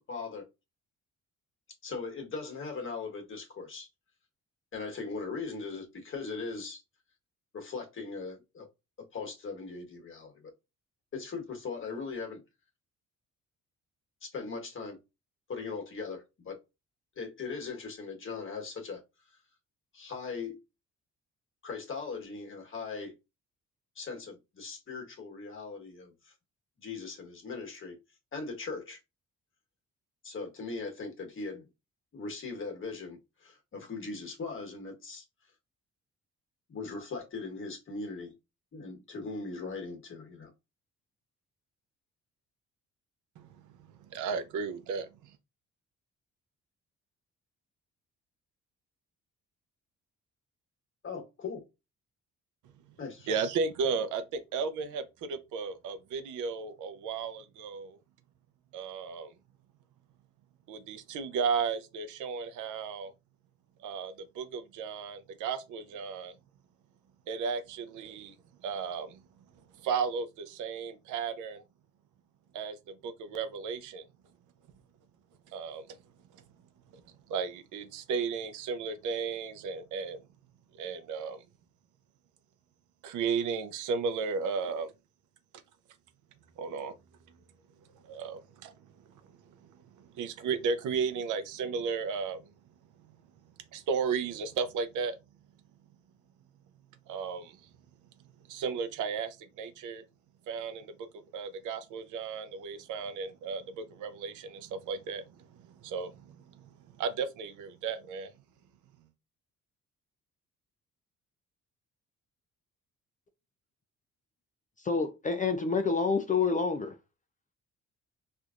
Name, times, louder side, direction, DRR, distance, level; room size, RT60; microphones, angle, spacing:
voice 1, 0.1-0.5 1.8-3.9 4.7-6.8 7.5-8.7 9.1-10.5 11.1-12.4 14.2-15.0 15.5-16.6 17.2-19.0 19.9-20.6 21.6-23.1 23.9-26.3 26.8-28.0 28.3-29.0 30.2-31.7 32.1-35.2 36.7-38.3 38.7-40.5 51.0-51.6 53.0-53.3, left 4 dB, 45° left, 1.3 m, -39 dB
voice 2, 44.1-45.3 53.3-58.0 58.7-59.3 60.7-63.1 63.8-66.3 67.3-68.3 68.6-69.2 69.8-71.6 72.5-72.8 73.0-74.0 75.5-76.0 76.9-77.0 77.3-80.2 80.7-81.4 83.0-84.9 86.6-87.0 88.0-88.7 90.0-92.5 93.7-95.2 97.1-97.6 98.5-100.0 100.5-106.7 107.0-108.3, right 5 dB, 85° right, 0.6 m, -34 dB
voice 3, 114.8-116.9, left 5 dB, 25° left, 0.5 m, -28 dB
4.4 x 2.6 x 2.4 m
cardioid pair, 90°, 30 cm